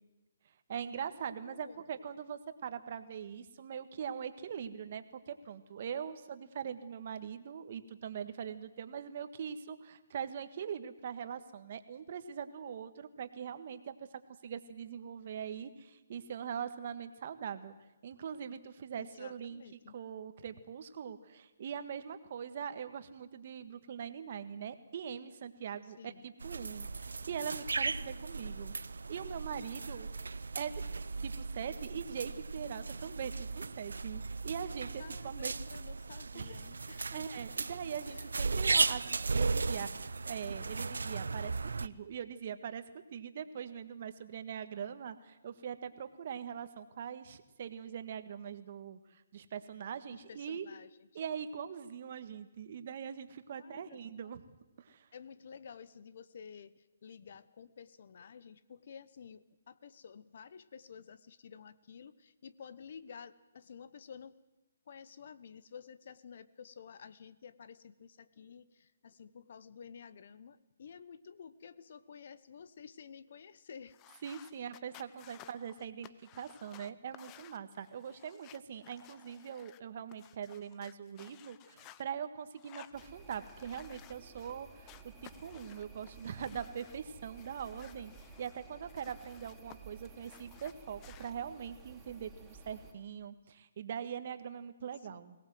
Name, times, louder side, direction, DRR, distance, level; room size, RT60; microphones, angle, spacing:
voice 1, 0.7-14.1 14.4-17.7 18.0-19.6 19.9-28.7 29.1-30.1 30.5-35.5 36.3-36.5 37.1-42.8 43.1-50.6 51.1-54.4 54.8-55.1 74.2-88.1 88.4-95.3, right 8 dB, 50° right, 10 dB, 1.6 m, -42 dB
voice 2, 1.4-2.1 19.0-19.9 26.0-26.3 35.0-37.3 38.0-38.4 50.1-51.2 53.5-54.0 55.1-64.3 64.9-74.0 95.1-95.2, left 7 dB, 55° left, 17 dB, 1.0 m, -52 dB
sound 1, 26.4-41.9, right 4 dB, 85° right, 0.7 m, -36 dB
sound 2, 73.9-82.0 82.5-84.5 84.9-87.0 87.4-89.8 90.0-91.3, left 14 dB, 25° left, 0.7 m, -57 dB
sound 3, 82.9-92.9, right 4 dB, 10° right, 3.8 m, -54 dB
22.0 x 18.5 x 7.7 m, 1.0 s
hypercardioid pair, 150°, 0 cm